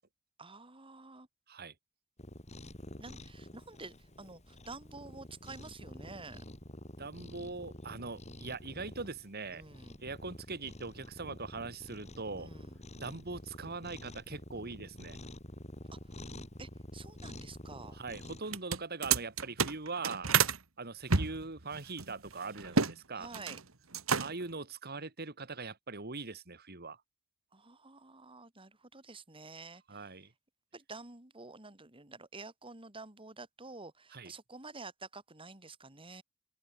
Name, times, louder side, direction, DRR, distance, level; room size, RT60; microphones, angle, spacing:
voice 1, 0.4-1.3 3.0-6.4 9.5-10.0 12.4-12.8 15.9-16.2 16.6-18.0 20.3-20.5 22.7-22.9 23.1-23.6 27.5-30.2 30.7-36.2, right 3 dB, 25° right, 3.3 m, -49 dB
Cat, 2.2-18.4, left 1 dB, 35° left, 7.6 m, -49 dB
voice 2, 7.0-9.6 10.0-12.5 13.0-15.2 17.9-20.3 20.8-23.3 24.2-27.0 29.9-30.3 34.1-34.3, right 3 dB, 50° right, 2.5 m, -41 dB
sound 1, 18.4-20.6 21.1-22.9 23.2-23.6 23.9-24.5, right 5 dB, 85° right, 2.0 m, -30 dB
open air
head